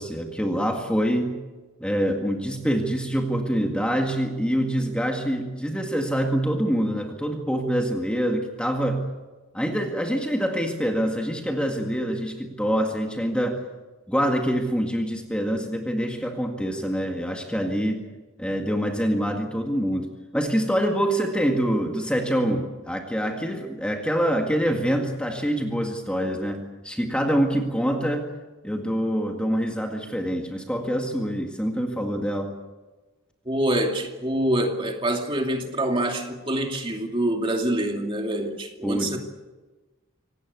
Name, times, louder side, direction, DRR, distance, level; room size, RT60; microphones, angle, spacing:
voice 1, 0.0-1.4 1.8-9.1 9.5-13.6 14.1-18.1 18.4-28.3 28.6-32.6 38.8-39.2, equal, 5° left, 2 dB, 1.9 m, -25 dB
voice 2, 33.5-39.2, right 1 dB, 25° right, 3 dB, 2.5 m, -25 dB
26.0 x 18.0 x 8.3 m, 1.2 s
head